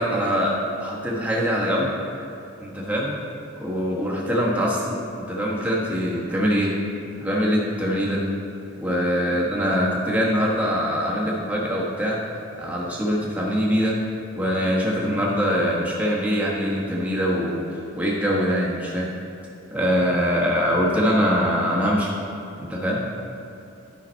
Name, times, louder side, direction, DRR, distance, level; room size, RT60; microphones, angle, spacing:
voice 1, 0.0-1.9 2.6-3.2 3.6-6.8 7.2-8.3 8.8-12.2 12.6-14.0 14.4-17.6 17.9-19.1 19.7-22.1 22.6-23.0, equal, 5° right, -5 dB, 1.2 m, -23 dB
10.5 x 5.7 x 4.4 m, 2.7 s
head